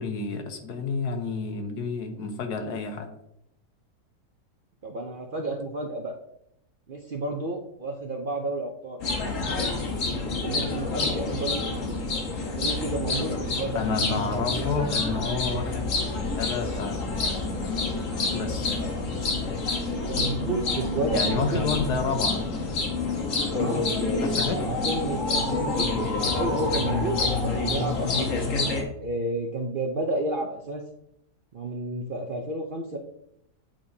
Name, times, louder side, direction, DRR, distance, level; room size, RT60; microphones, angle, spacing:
voice 1, 0.0-3.1 13.7-15.9 16.4-17.1 18.3-18.7 21.1-22.4 24.2-24.8, left 5 dB, 85° left, 5 dB, 1.5 m, -30 dB
voice 2, 4.8-6.1 6.9-9.0 10.2-11.9 12.4-14.8 20.1-21.6 23.5-23.9 24.6-28.3 29.0-30.8 31.5-33.0, right 2 dB, 55° right, 1 dB, 0.6 m, -31 dB
sound 1, 9.0-28.8, left 3 dB, 55° left, 1.5 m, -28 dB
8.7 x 5.1 x 2.7 m, 0.78 s
omnidirectional pair, 1.7 m